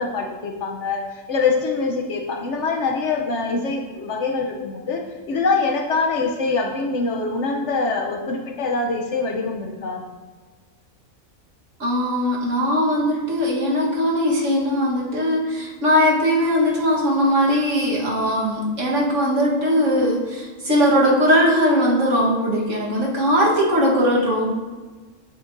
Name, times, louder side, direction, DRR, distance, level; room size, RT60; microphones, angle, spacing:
voice 1, 0.0-10.1, left 4 dB, 60° left, 2 dB, 1.0 m, -24 dB
voice 2, 11.8-24.5, equal, 65° right, -4 dB, 1.8 m, -20 dB
8.3 x 7.0 x 2.6 m, 1.4 s
omnidirectional pair, 1.4 m